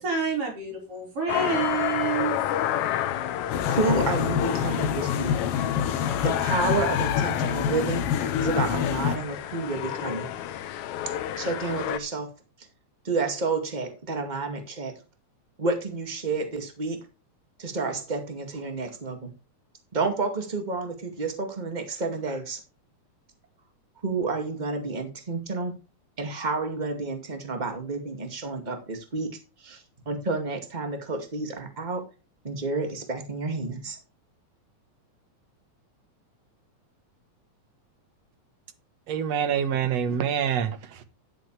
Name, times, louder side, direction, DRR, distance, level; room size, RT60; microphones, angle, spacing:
voice 1, 0.0-2.4, right 5 dB, 50° right, 5.6 m, -28 dB
sound 1, 1.3-12.0, left 12 dB, 80° left, 2.3 m, -30 dB
sound 2, 3.5-9.2, left 8 dB, 65° left, 1.7 m, -27 dB
voice 2, 3.7-5.3 6.2-8.0 8.4-10.3 11.4-12.3 13.1-14.9 15.6-17.0 17.6-19.3 19.9-22.6 24.0-25.7 26.2-29.3 29.6-29.8 30.1-32.0 32.4-34.0, right 3 dB, 15° right, 1.9 m, -30 dB
voice 3, 39.1-41.0, right 8 dB, 65° right, 2.3 m, -26 dB
11.5 x 8.9 x 3.3 m
omnidirectional pair, 3.4 m